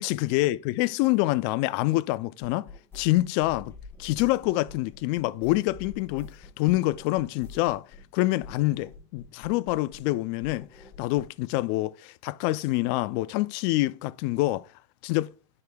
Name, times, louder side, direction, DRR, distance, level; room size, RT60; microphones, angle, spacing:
voice 1, 0.0-2.7 2.9-3.7 4.0-7.9 8.1-10.7 11.0-14.7 15.0-15.3, left 18 dB, 45° left, 0.4 m, -26 dB
sound 1, 2.4-8.1 8.4-10.1 10.4-11.4, left 3 dB, 15° left, 1.3 m, -47 dB
9.5 x 4.8 x 2.3 m
hypercardioid pair, 120°, 17 cm